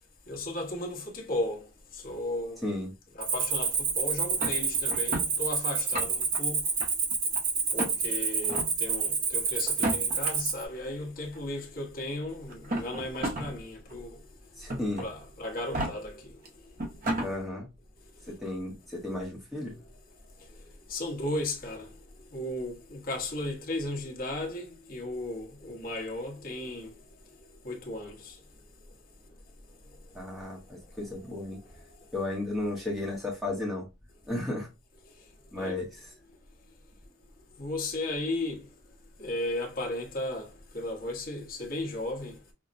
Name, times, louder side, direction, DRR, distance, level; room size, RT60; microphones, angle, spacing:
voice 1, 0.3-1.7 1.9-2.6 3.2-6.7 7.7-14.2 15.0-16.3 20.9-21.9 22.3-26.9 27.6-28.4 35.6-35.8 37.6-38.7 39.2-42.3, left 1 dB, 45° left, 1.1 m, -35 dB
voice 2, 2.6-2.9 14.6-15.0 17.2-17.7 18.3-19.7 30.1-31.6 32.1-33.9 34.3-34.7 35.5-36.1, left 2 dB, ahead, 0.8 m, -34 dB
Cricket, 3.2-10.6, right 5 dB, 65° right, 1.0 m, -29 dB
sound 1, 4.4-5.3 5.8-6.4 6.8-7.4 7.8-7.9 8.4-8.7 9.7-10.3 11.4-11.5 12.5-13.5 13.9-14.0 14.7-15.1 15.6-15.9 16.5-16.6 16.8-17.3, right 1 dB, 40° right, 0.8 m, -32 dB
5.7 x 2.1 x 2.5 m
head